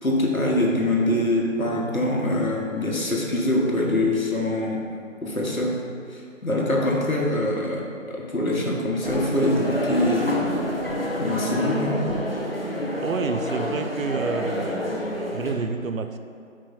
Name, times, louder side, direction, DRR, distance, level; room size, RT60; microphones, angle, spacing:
voice 1, 0.0-4.8 5.2-5.8 6.1-10.4 11.2-12.1, left 1 dB, 90° left, -2 dB, 1.3 m, -24 dB
sound 1, 9.0-15.5, left 1 dB, 45° left, 0.8 m, -28 dB
voice 2, 13.0-14.9 15.3-16.2, right 5 dB, 75° right, 8 dB, 0.5 m, -29 dB
5.3 x 4.8 x 3.9 m, 2.4 s
figure-of-eight pair, 170°, 40 cm